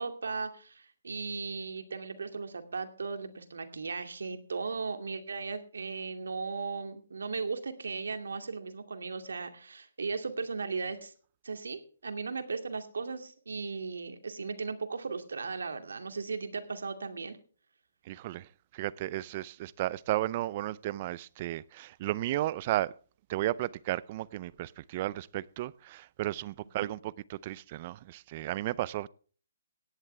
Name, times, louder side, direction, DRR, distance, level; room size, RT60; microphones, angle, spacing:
voice 1, 0.0-11.1 11.4-17.4 26.8-26.9, right 4 dB, 85° right, 2.4 m, -37 dB
voice 2, 18.1-22.9 23.3-29.1, right 15 dB, 35° right, 0.5 m, -34 dB
17.5 x 11.0 x 3.4 m
hypercardioid pair, 160°, 0 cm